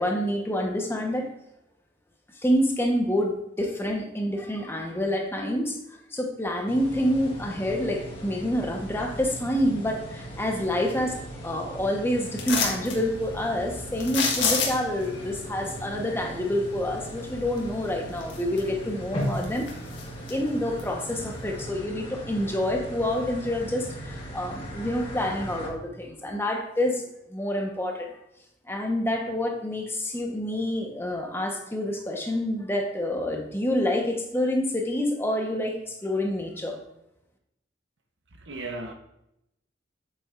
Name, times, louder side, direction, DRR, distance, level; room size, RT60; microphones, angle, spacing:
voice 1, 0.0-1.3 2.3-5.8 6.1-19.7 20.3-28.1 28.7-36.8, left 1 dB, 15° left, 1.1 m, -27 dB
sound 1, 6.7-25.7, equal, 30° left, 1.7 m, -38 dB
sound 2, 12.4-13.0 14.0-15.0 17.6-17.7 18.2-18.9 19.2-20.3 20.8-20.9, left 5 dB, 75° left, 1.6 m, -27 dB
voice 2, 38.3-38.9, right 2 dB, 75° right, 1.0 m, -36 dB
8.4 x 7.7 x 2.6 m
head